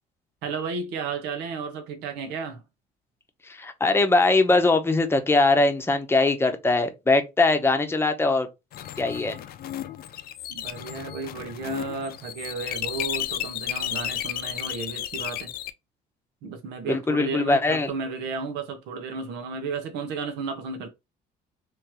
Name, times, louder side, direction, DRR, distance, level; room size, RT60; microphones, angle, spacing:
voice 1, 0.4-2.6 10.5-15.5 16.4-20.9, right 4 dB, 85° right, 0.9 m, -33 dB
voice 2, 3.4-8.5 9.0-9.4 16.8-17.9, left 3 dB, 15° left, 0.8 m, -21 dB
sound 1, 8.7-15.7, left 11 dB, 65° left, 0.5 m, -33 dB
3.5 x 3.1 x 3.0 m
cardioid pair, 110°, 17 cm